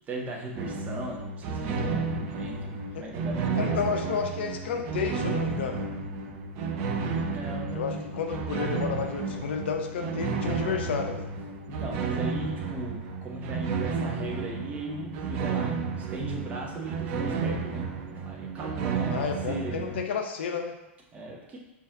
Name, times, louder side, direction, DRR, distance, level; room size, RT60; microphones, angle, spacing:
voice 1, 0.1-4.0 7.2-8.1 11.8-17.9 18.2-19.9 21.1-21.6, right 2 dB, 20° right, -1 dB, 0.8 m, -38 dB
sound 1, 0.5-20.0, right 4 dB, 40° right, 0.4 m, -32 dB
voice 2, 3.6-5.8 7.7-11.3 19.0-20.8, left 6 dB, 55° left, 4 dB, 0.5 m, -31 dB
3.9 x 2.6 x 3.8 m, 0.95 s
figure-of-eight pair, 95°, 7 cm